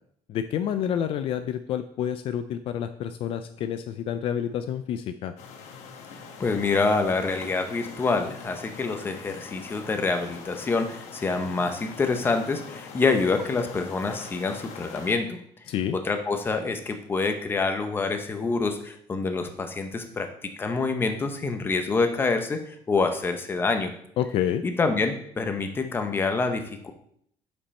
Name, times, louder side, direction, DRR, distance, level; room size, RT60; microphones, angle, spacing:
voice 1, 0.3-5.3 15.7-16.0 24.2-24.6, left 9 dB, 55° left, 9 dB, 0.4 m, -28 dB
sound 1, 5.4-15.1, left 5 dB, 90° left, 1.1 m, -43 dB
voice 2, 6.4-15.4 15.9-20.3 20.6-23.9 24.8-26.9, left 4 dB, 20° left, 6 dB, 0.7 m, -26 dB
7.2 x 5.3 x 4.2 m, 0.67 s
cardioid pair, 170°, 11 cm